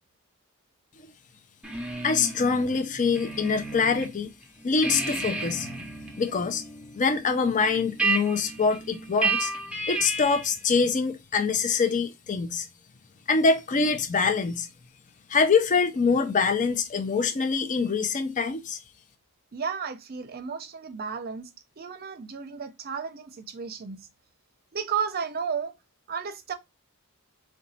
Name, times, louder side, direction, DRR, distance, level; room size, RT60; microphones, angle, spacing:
sound 1, 1.6-4.1 4.4-10.6, right 3 dB, 5° right, 0.6 m, -32 dB
voice 1, 2.0-4.3 4.6-5.7 6.2-6.6 7.0-9.5 9.9-12.7 13.3-14.7 15.3-18.8, left 5 dB, 40° left, 0.5 m, -24 dB
voice 2, 19.5-21.5 21.8-24.1 24.7-25.7 26.1-26.5, right 6 dB, 45° right, 0.6 m, -33 dB
3.9 x 2.2 x 4.0 m
head